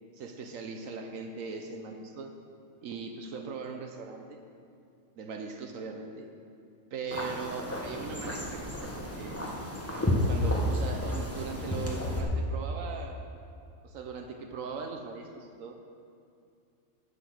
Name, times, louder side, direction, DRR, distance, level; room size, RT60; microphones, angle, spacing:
voice 1, 0.2-2.3 2.8-4.4 5.1-6.3 6.9-9.6 10.3-13.2 13.8-15.8, right 5 dB, 75° right, 4 dB, 1.2 m, -40 dB
sound 1, 7.1-12.2, left 1 dB, 10° left, 1.1 m, -31 dB
10.0 x 7.9 x 6.2 m, 2.5 s
omnidirectional pair, 1.4 m